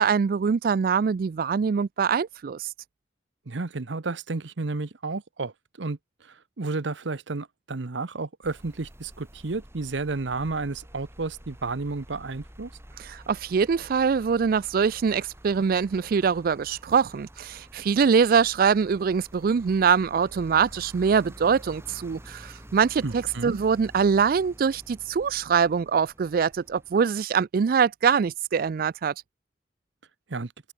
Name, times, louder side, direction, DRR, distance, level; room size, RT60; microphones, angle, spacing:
voice 1, 0.0-2.7 13.0-29.1, right 6 dB, 50° right, 0.3 m, -23 dB
voice 2, 3.5-12.7 23.0-23.6 30.3-30.5, right 3 dB, 75° right, 0.9 m, -32 dB
sound 1, 8.4-27.0, equal, 15° right, 4.9 m, -48 dB
open air
head